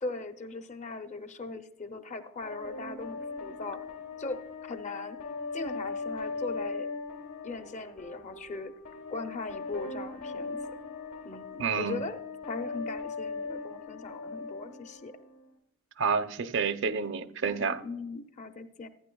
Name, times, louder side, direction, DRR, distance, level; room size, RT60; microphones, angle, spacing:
voice 1, 0.0-3.9 4.2-5.2 5.5-6.9 7.4-8.7 9.1-10.6 11.2-15.1 17.8-18.9, left 3 dB, 30° left, 0.6 m, -39 dB
sound 1, 2.4-15.4, left 4 dB, 70° left, 1.5 m, -39 dB
voice 2, 11.6-12.0 16.0-17.8, right 5 dB, 55° right, 0.5 m, -29 dB
14.5 x 9.3 x 2.3 m
head